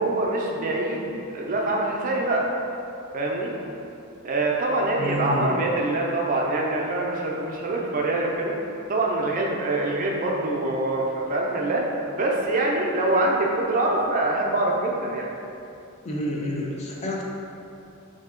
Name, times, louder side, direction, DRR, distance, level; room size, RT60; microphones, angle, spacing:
voice 1, 0.0-2.5 3.1-3.5 4.2-8.5 8.9-11.8 12.2-15.3, right 2 dB, 40° right, -1 dB, 0.4 m, -24 dB
voice 2, 5.0-5.6 16.0-17.2, left 1 dB, 30° left, -2 dB, 0.4 m, -29 dB
3.2 x 2.7 x 3.6 m, 2.7 s
head